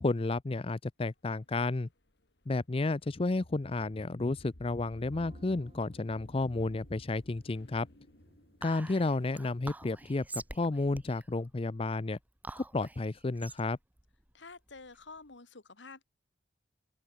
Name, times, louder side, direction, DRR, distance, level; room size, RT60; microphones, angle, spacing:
voice 1, 0.0-1.9 2.5-7.9 8.6-12.2 12.6-13.8, left 2 dB, 30° left, 0.5 m, -32 dB
sound 1, 1.5-10.2, left 1 dB, 65° left, 2.9 m, -55 dB
sound 2, 5.0-10.9, right 1 dB, 35° right, 4.3 m, -63 dB
Whispering, 8.6-15.3, right 2 dB, 10° right, 0.8 m, -47 dB
voice 2, 14.3-16.1, left 4 dB, 80° left, 2.0 m, -49 dB
open air
head